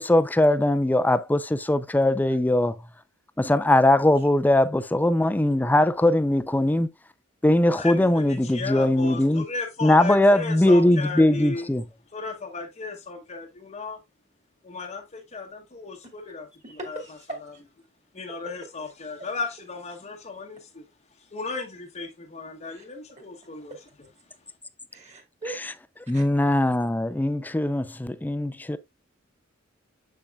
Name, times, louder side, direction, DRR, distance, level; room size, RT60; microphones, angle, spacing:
voice 1, 0.0-2.8 3.4-6.9 7.4-9.5 9.8-11.9 25.6-25.7 26.1-28.8, left 1 dB, 10° left, 0.4 m, -21 dB
voice 2, 7.7-11.7 12.1-14.0 14.6-16.5 16.9-17.0 17.4-17.5 18.1-20.8 21.3-23.7, left 4 dB, 35° left, 0.8 m, -35 dB
voice 3, 16.6-17.3 22.7-22.8 24.9-25.6 26.1-26.2, right 2 dB, 35° right, 2.1 m, -39 dB
7.0 x 6.7 x 2.2 m
head